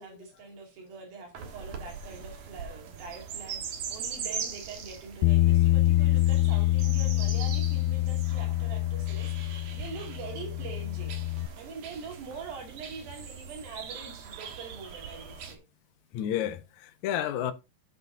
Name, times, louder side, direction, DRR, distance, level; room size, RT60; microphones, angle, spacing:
voice 1, 0.0-11.2 11.6-15.6, right 5 dB, 80° right, 4.2 m, -44 dB
sound 1, 1.3-15.6, right 6 dB, 60° right, 2.0 m, -41 dB
Bass guitar, 5.2-11.5, left 16 dB, 90° left, 2.4 m, -26 dB
voice 2, 16.1-17.5, left 10 dB, 70° left, 2.0 m, -31 dB
15.0 x 5.3 x 2.6 m
omnidirectional pair, 4.1 m